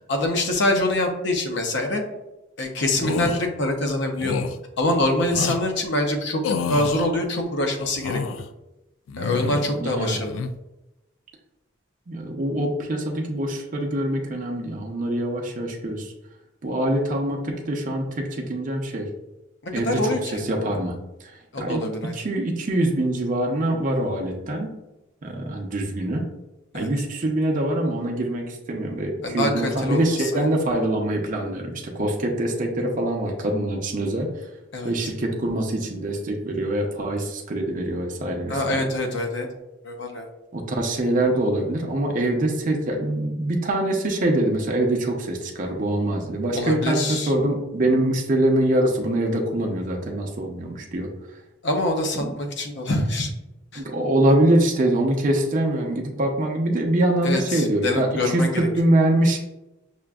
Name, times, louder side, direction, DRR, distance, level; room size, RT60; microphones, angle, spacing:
voice 1, 0.0-2.0 2.6-4.4 4.8-8.2 9.2-10.4 19.6-20.4 21.5-22.1 26.7-26.9 29.2-30.5 34.7-34.9 38.5-39.5 39.8-40.3 46.5-47.3 51.6-53.3 53.7-53.8 57.2-58.7, left 1 dB, 60° left, 3 dB, 0.7 m, -25 dB
sound 1, 3.0-3.4 4.2-4.6 5.3-5.6 6.4-7.1 7.8-8.5 9.1-9.8 10.1-10.5, left 5 dB, 90° left, 0.3 m, -29 dB
voice 2, 9.7-10.2 12.1-16.1 16.6-19.1 19.7-21.8 22.1-24.7 25.2-26.3 26.7-34.5 34.8-38.8 40.5-51.1 52.2-52.4 53.8-59.4, right 1 dB, 45° right, 1 dB, 0.6 m, -24 dB
5.8 x 2.5 x 2.3 m, 0.96 s
head